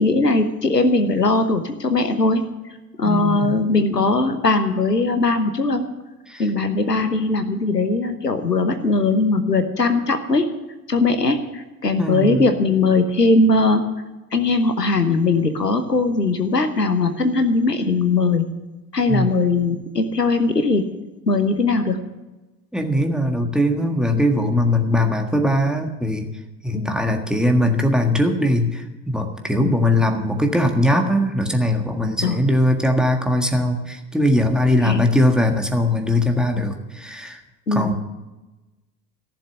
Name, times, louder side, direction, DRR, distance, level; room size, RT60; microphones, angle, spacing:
voice 1, 0.0-2.4 3.0-5.8 6.4-10.5 10.9-13.8 14.3-18.5 18.9-20.8 21.3-22.0 26.7-26.9 29.5-29.8 32.2-32.4 34.8-35.0 37.7-37.9, left 3 dB, 85° left, 9 dB, 1.1 m, -19 dB
voice 2, 3.0-3.5 6.3-6.5 12.0-12.5 19.1-19.3 22.7-26.3 26.6-37.4 37.7-37.9, left 1 dB, ahead, 4 dB, 1.6 m, -20 dB
15.0 x 7.1 x 9.6 m, 1.1 s
figure-of-eight pair, 75°, 47 cm